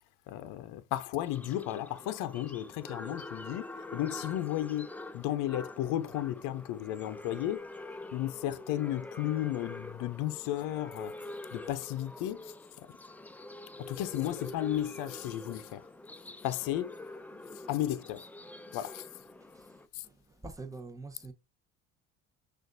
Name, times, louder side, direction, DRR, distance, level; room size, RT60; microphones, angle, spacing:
voice 1, 0.3-3.7 3.9-4.9 5.1-7.6 8.1-11.1 11.5-12.4 13.9-15.9 16.4-16.9 17.7-18.3 18.7-19.0 19.9-20.0, left 13 dB, 70° left, 0.6 m, -34 dB
sound 1, 1.3-19.9, left 2 dB, 5° left, 0.3 m, -46 dB
voice 2, 20.0-21.3, right 3 dB, 10° right, 0.8 m, -45 dB
6.3 x 2.5 x 2.5 m
supercardioid pair, 95°, 33 cm